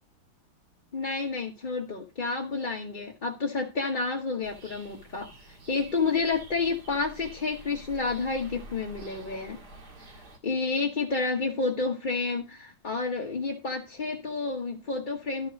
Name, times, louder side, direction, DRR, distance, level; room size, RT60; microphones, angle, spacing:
voice 1, 0.9-9.6 10.4-15.5, left 4 dB, 30° left, 0 dB, 1.0 m, -30 dB
sound 1, 4.4-10.4, right 1 dB, 55° right, 2.5 m, -48 dB
12.0 x 4.6 x 6.2 m, 0.28 s
omnidirectional pair, 2.1 m